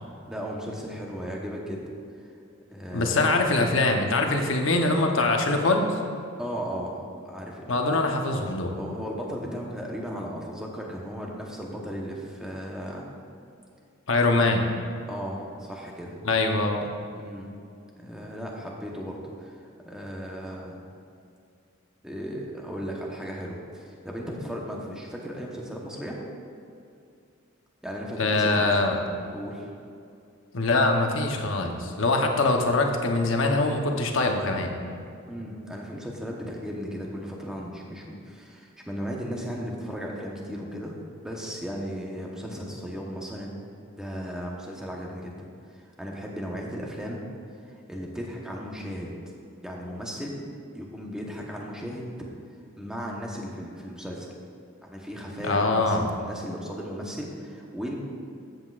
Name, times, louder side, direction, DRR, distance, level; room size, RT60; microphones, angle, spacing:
voice 1, 0.2-1.8 2.7-3.3 6.4-8.0 8.8-13.1 15.1-16.2 17.2-17.5 18.0-19.6 19.8-20.8 22.0-26.3 27.8-28.7 29.3-29.7 35.3-43.5 44.0-45.4 45.7-47.2 47.6-49.1 49.6-50.4 50.7-52.1 52.8-54.3 54.8-58.0, equal, 5° right, -2 dB, 1.0 m, -36 dB
voice 2, 2.9-5.9 7.7-8.7 14.1-14.6 16.2-16.8 28.2-29.0 30.5-34.8 55.4-56.1, left 2 dB, 65° left, 3 dB, 1.0 m, -23 dB
13.5 x 8.0 x 2.5 m, 2.5 s
head